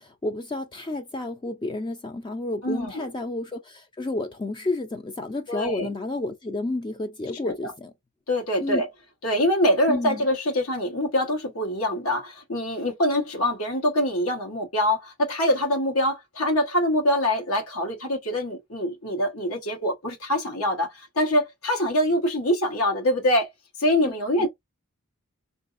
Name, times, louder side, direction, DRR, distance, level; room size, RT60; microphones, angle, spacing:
voice 1, 0.0-7.9 8.6-8.8 9.9-10.2 24.0-24.1 24.4-24.5, left 2 dB, 20° left, 0.4 m, -31 dB
voice 2, 2.6-3.1 5.5-5.9 7.4-7.7 8.3-8.9 9.2-23.5 23.8-24.5, left 1 dB, 75° left, 1.2 m, -24 dB
3.9 x 2.6 x 2.4 m
head